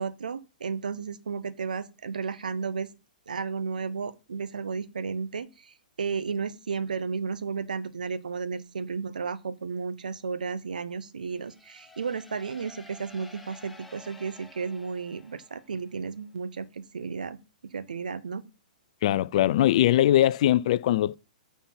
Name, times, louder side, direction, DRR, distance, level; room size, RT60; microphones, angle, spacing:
voice 1, 0.0-2.9 3.3-17.4 17.6-18.4, right 5 dB, 70° right, 0.8 m, -33 dB
sound 1, 11.3-16.0, left 1 dB, ahead, 1.3 m, -52 dB
voice 2, 19.0-21.2, left 13 dB, 50° left, 0.4 m, -21 dB
9.2 x 4.3 x 5.6 m
figure-of-eight pair, 115°, 5 cm